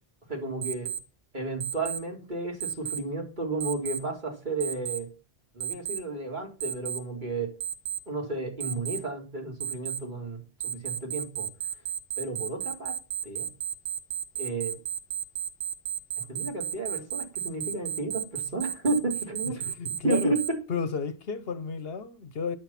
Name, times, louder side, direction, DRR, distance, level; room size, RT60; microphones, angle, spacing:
voice 1, 0.3-0.9 1.3-5.1 5.5-7.5 8.1-11.5 12.2-13.0 13.2-13.5 14.4-14.8 16.2-19.7 20.0-20.6, right 3 dB, 45° right, 3.6 m, -32 dB
Alarm, 0.6-1.0 1.6-2.0 2.6-3.0 3.6-4.0 4.6-5.0 5.6-6.0 6.6-7.0 7.6-8.0 8.6-9.0 9.6-10.0 10.6-20.5, right 9 dB, 75° right, 1.3 m, -32 dB
voice 2, 19.7-20.3 20.7-22.6, left 5 dB, 70° left, 1.1 m, -32 dB
10.5 x 7.8 x 5.8 m
omnidirectional pair, 1.1 m